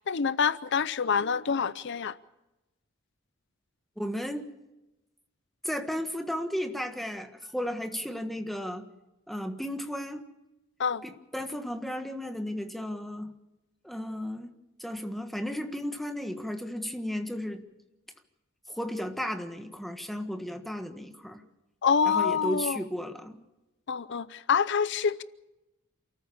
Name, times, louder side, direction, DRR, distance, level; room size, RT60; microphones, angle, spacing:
voice 1, 0.1-2.2 10.8-11.0 21.8-22.8 23.9-25.2, left 6 dB, 60° left, 0.6 m, -26 dB
voice 2, 4.0-4.5 5.6-8.8 9.3-10.2 11.0-13.3 13.8-14.5 14.8-17.6 18.7-21.4 22.0-23.4, equal, ahead, 1.5 m, -34 dB
28.5 x 14.0 x 7.1 m
head